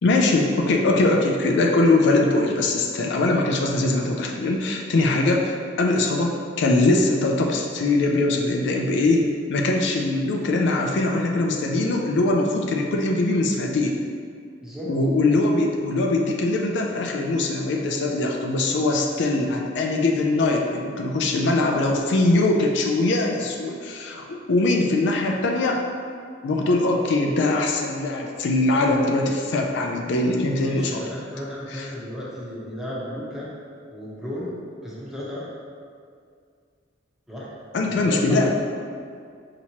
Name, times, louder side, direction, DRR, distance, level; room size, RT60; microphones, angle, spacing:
voice 1, 0.0-14.0 14.9-25.8 26.4-31.0 31.7-31.9 37.7-38.5, left 2 dB, 65° left, 1 dB, 0.4 m, -22 dB
voice 2, 14.6-14.9 30.6-33.5 33.9-34.6 34.8-35.5 37.3-37.5 37.9-38.6, equal, ahead, -8 dB, 0.8 m, -34 dB
5.7 x 2.9 x 2.8 m, 2.2 s
head